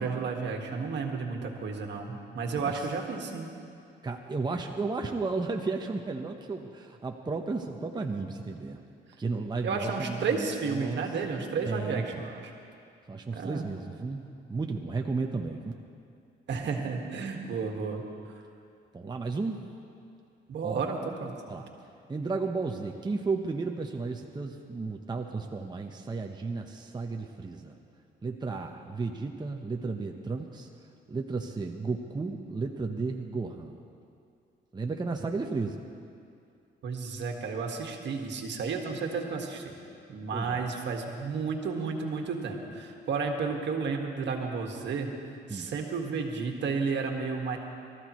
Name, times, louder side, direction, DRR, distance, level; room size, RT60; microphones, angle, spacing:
voice 1, 0.0-3.5 9.6-12.5 13.3-13.7 16.5-18.0 20.5-21.4 36.8-39.8 40.1-45.1 45.5-47.6, right 5 dB, 65° right, 2 dB, 1.8 m, -32 dB
voice 2, 4.0-8.8 9.2-11.0 11.6-12.2 13.1-14.2 14.5-15.7 18.9-19.6 20.6-20.9 21.5-21.7 22.1-27.8 28.2-30.7 31.1-33.8 34.7-35.8 40.3-40.6 45.5-45.7, right 3 dB, 20° right, 2 dB, 1.0 m, -33 dB
23.5 x 14.0 x 3.1 m, 2.4 s
cardioid pair, 90°, 20 cm